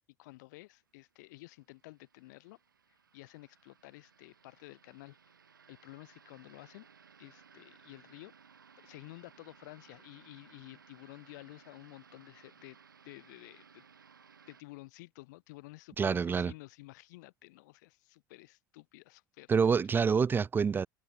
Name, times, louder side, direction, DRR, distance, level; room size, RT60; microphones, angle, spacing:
voice 1, 0.2-2.6 3.1-5.2 5.7-6.9 7.2-8.3 8.8-12.8 13.0-13.8 14.5-19.5 19.8-19.9, left 21 dB, 65° left, 2.1 m, -52 dB
sound 1, 1.1-14.6, right 6 dB, 90° right, 2.3 m, -61 dB
voice 2, 16.0-16.5 19.5-20.9, right 6 dB, 20° right, 0.5 m, -27 dB
hypercardioid pair, 85°, 10 cm